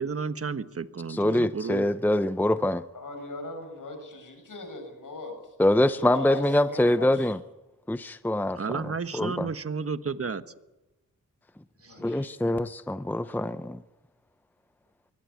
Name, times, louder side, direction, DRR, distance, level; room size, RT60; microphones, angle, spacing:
voice 1, 0.0-1.9 8.5-10.4 11.8-12.0, right 5 dB, 45° right, 1.3 m, -32 dB
voice 2, 1.1-2.8 5.6-7.4 7.9-8.8 9.1-9.5 12.0-13.8, left 1 dB, 5° left, 0.7 m, -24 dB
voice 3, 2.9-5.3 5.6-7.3 11.8-12.3, left 2 dB, 70° left, 7.0 m, -40 dB
22.5 x 17.5 x 8.5 m
cardioid pair, 60°, 33 cm